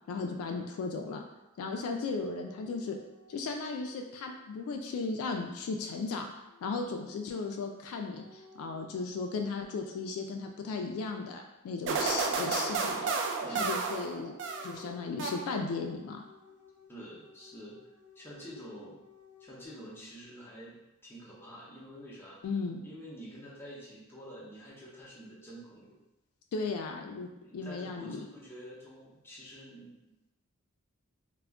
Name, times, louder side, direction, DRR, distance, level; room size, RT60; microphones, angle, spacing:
voice 1, 0.1-1.2 1.6-3.0 3.3-6.3 6.6-13.1 13.5-14.4 14.6-16.2 22.4-22.8 26.5-28.2, left 4 dB, 70° left, 3 dB, 0.3 m, -36 dB
sound 1, 2.1-11.1 12.3-19.7, left 3 dB, 75° right, 1.1 m, -57 dB
sound 2, 11.9-14.8 15.2-15.8, right 4 dB, 55° right, 0.3 m, -32 dB
voice 2, 13.4-13.8 16.9-17.8 18.2-19.0 19.4-20.8 21.0-22.4 22.8-26.0 27.4-30.3, equal, 10° left, -6 dB, 0.6 m, -48 dB
2.3 x 2.1 x 3.4 m, 0.97 s
head